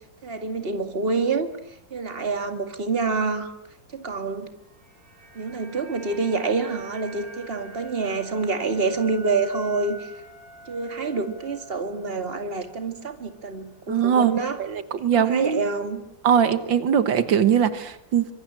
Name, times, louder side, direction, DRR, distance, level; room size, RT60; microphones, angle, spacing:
voice 1, 0.2-1.5 1.9-3.5 3.9-4.5 5.4-10.0 10.7-14.6 15.2-16.0, right 4 dB, 30° right, 7 dB, 2.4 m, -27 dB
sound 1, 4.5-12.8 13.1-13.3, right 2 dB, 50° right, 5.9 m, -46 dB
voice 2, 13.9-14.3 14.6-15.6 16.2-18.3, right 8 dB, 80° right, 12 dB, 2.1 m, -21 dB
25.5 x 24.0 x 8.9 m, 0.78 s
omnidirectional pair, 2.0 m